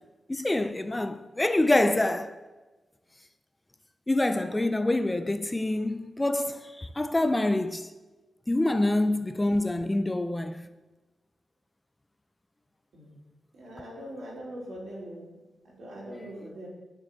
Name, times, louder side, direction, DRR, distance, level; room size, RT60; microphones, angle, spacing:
voice 1, 0.3-2.3 4.1-7.9 8.5-10.7, left 1 dB, 15° left, 0.5 m, -26 dB
voice 2, 13.5-15.4 15.6-16.7, equal, 80° right, 4.7 m, -41 dB
11.5 x 7.2 x 6.6 m
wide cardioid pair, 165°, 0 cm